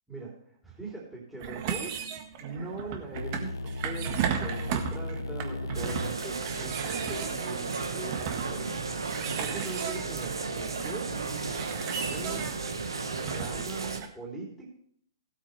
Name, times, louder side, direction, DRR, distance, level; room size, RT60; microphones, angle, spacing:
voice 1, 0.6-1.9 2.4-3.5 3.8-8.8 9.3-11.3 11.6-12.5 13.3-14.7, right 3 dB, ahead, -6 dB, 3.4 m, -41 dB
sound 1, 1.4-14.1, right 8 dB, 40° right, 1.5 m, -36 dB
sound 2, 3.1-9.1, left 2 dB, 75° left, 0.9 m, -38 dB
sound 3, 5.7-14.0, right 4 dB, 80° right, 1.4 m, -34 dB
16.5 x 8.5 x 3.3 m, 0.64 s
figure-of-eight pair, 125°, 2 cm